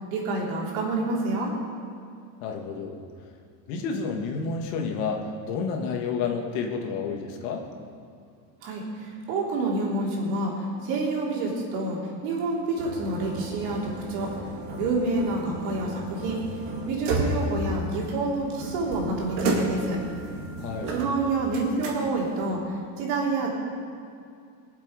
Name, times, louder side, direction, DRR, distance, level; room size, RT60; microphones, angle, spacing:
voice 1, 0.1-1.5 8.6-10.5 10.8-14.3 14.8-16.4 16.8-20.0 20.9-23.5, right 2 dB, 85° right, -2 dB, 3.5 m, -28 dB
voice 2, 2.4-3.3 3.7-7.7 20.6-20.9, left 5 dB, 65° left, 2 dB, 1.9 m, -30 dB
sound 1, 12.8-22.5, right 2 dB, 60° right, 2.2 m, -33 dB
22.0 x 7.5 x 5.3 m, 2.3 s
cardioid pair, 175°, 41 cm